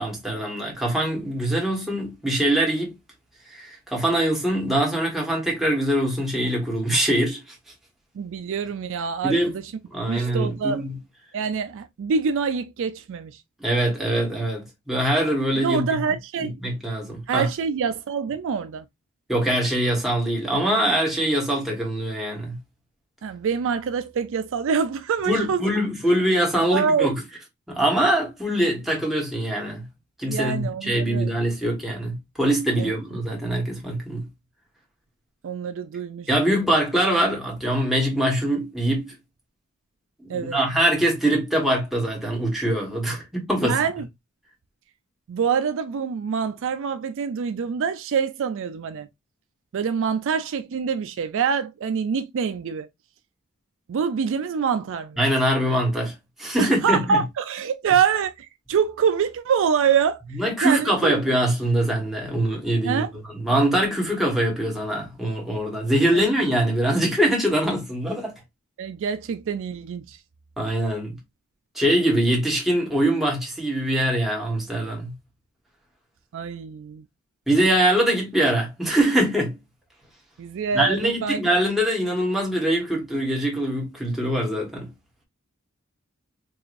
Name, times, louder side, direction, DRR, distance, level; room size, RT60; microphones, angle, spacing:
voice 1, 0.0-3.0 3.5-7.4 9.2-9.5 9.9-11.0 13.6-16.0 16.4-17.5 19.3-22.6 25.3-27.2 27.7-29.9 30.2-34.3 36.3-39.1 40.2-43.8 55.2-56.1 56.4-57.2 60.3-63.1 63.3-68.3 70.6-71.2 71.7-75.1 77.5-79.5 80.7-84.9, right 1 dB, ahead, 1.4 m, -23 dB
voice 2, 8.2-9.6 10.1-10.8 11.3-13.4 15.5-16.6 17.3-18.8 23.2-25.7 26.7-27.1 30.3-31.3 32.8-32.9 35.4-36.3 40.3-40.6 43.6-44.1 45.3-49.1 49.7-52.9 53.9-55.2 56.6-60.2 60.6-61.2 62.8-63.1 66.1-66.3 68.8-70.2 76.3-77.0 80.4-81.4, right 6 dB, 60° right, 0.4 m, -25 dB
4.8 x 2.5 x 2.5 m
head